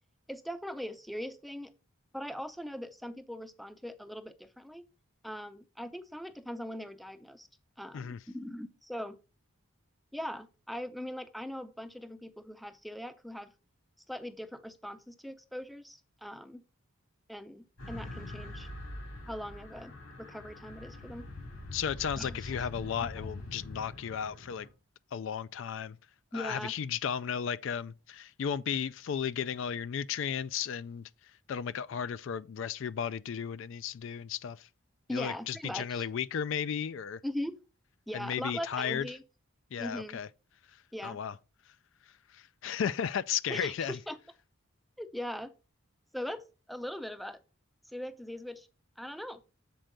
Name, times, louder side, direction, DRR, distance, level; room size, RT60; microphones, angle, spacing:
voice 1, 0.3-1.7 2.1-4.9 5.2-7.5 7.8-9.2 10.1-13.5 14.1-16.6 17.3-18.7 19.3-21.3 22.2-23.1 26.3-26.7 35.1-36.0 37.2-37.6 38.1-39.2 39.8-40.2 40.9-41.2 43.5-44.2 45.0-45.5 46.1-47.4 47.9-48.7 49.0-49.4, equal, ahead, 0.5 m, -40 dB
sound 1, 17.8-24.7, left 2 dB, 85° left, 4.7 m, -44 dB
voice 2, 21.7-24.7 25.1-26.0 26.3-31.0 31.5-34.7 35.1-37.2 38.1-39.1 39.7-40.3 41.0-41.3 42.3-44.0, left 8 dB, 60° left, 0.3 m, -34 dB
7.6 x 4.4 x 5.1 m
head